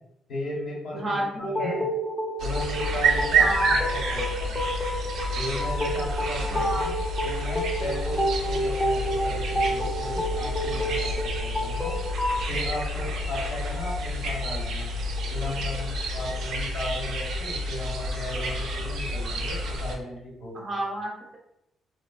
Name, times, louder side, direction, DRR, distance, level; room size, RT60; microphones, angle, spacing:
voice 1, 0.3-1.9 2.4-4.6 5.3-6.9 7.2-12.0 12.5-15.0 15.3-20.8, left 2 dB, 65° left, -4 dB, 1.2 m, -36 dB
voice 2, 0.9-1.8 3.4-3.7 6.4-6.9 20.5-21.4, right 1 dB, 40° right, -1 dB, 0.8 m, -31 dB
sound 1, 1.4-12.4, equal, 15° left, 0.5 m, -30 dB
sound 2, 2.4-20.0, right 1 dB, 75° right, 0.4 m, -29 dB
3.0 x 2.3 x 2.3 m, 0.83 s
cardioid pair, 90°, 0 cm